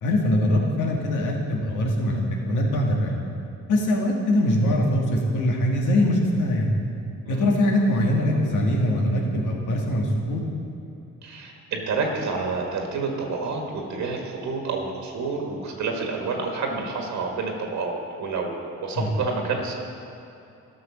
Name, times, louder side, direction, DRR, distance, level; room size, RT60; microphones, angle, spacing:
voice 1, 0.0-3.1 3.7-6.7 7.3-10.4 19.0-19.1, left 1 dB, 80° left, 0 dB, 1.8 m, -22 dB
voice 2, 11.2-19.8, right 4 dB, 70° right, 1 dB, 1.6 m, -29 dB
12.5 x 6.2 x 6.1 m, 2.7 s
cardioid pair, 90°, 30 cm